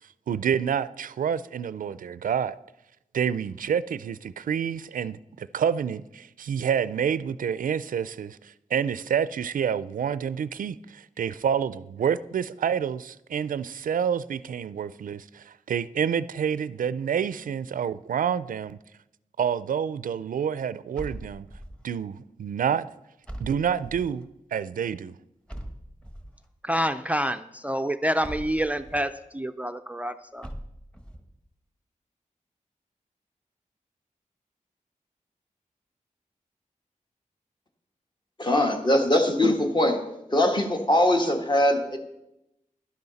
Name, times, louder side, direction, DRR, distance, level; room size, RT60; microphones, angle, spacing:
voice 1, 0.3-2.6 3.1-18.8 19.4-21.5 21.8-22.9 23.4-25.1, right 8 dB, 85° right, 0.4 m, -28 dB
sound 1, 20.9-21.9 23.3-24.2 25.5-26.4 28.2-29.1 30.4-31.3, equal, 10° left, 1.2 m, -40 dB
voice 2, 26.6-30.5, equal, 10° right, 0.4 m, -28 dB
voice 3, 38.4-40.0 40.3-42.0, left 1 dB, 35° left, 1.5 m, -22 dB
11.5 x 10.5 x 4.1 m
wide cardioid pair, 95°, 14 cm